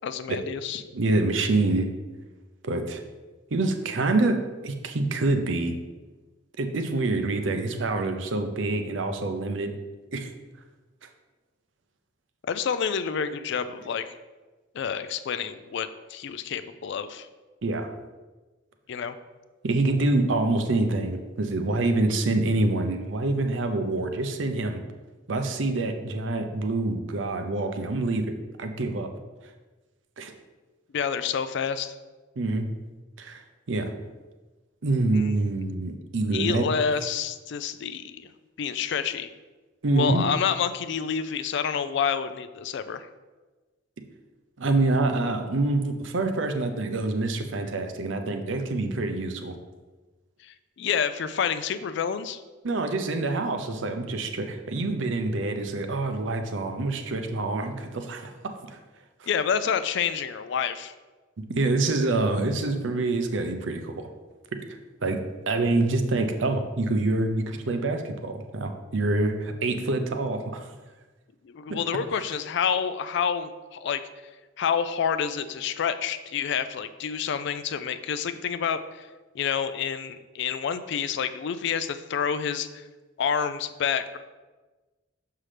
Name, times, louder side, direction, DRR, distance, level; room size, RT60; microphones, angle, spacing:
voice 1, 0.0-0.8 12.4-14.1 14.7-17.3 18.9-19.2 30.9-31.9 35.1-35.3 36.3-38.3 38.6-39.3 39.9-43.1 50.4-52.4 59.3-60.9 71.4-74.0 74.6-79.1 79.3-82.8 83.2-84.2, left 7 dB, 60° left, 12 dB, 0.3 m, -28 dB
voice 2, 0.9-1.9 2.6-3.0 3.5-5.7 6.6-9.7 10.1-10.3 17.6-17.9 19.6-24.8 25.3-29.1 30.2-30.3 32.4-32.7 33.2-33.4 33.7-33.9 34.8-36.7 39.8-40.2 44.6-49.5 52.6-58.8 59.2-59.3 61.5-64.1 65.0-65.2 65.5-70.7 71.7-71.8, right 2 dB, 70° right, 6 dB, 0.6 m, -26 dB
6.2 x 5.7 x 3.3 m, 1.2 s
head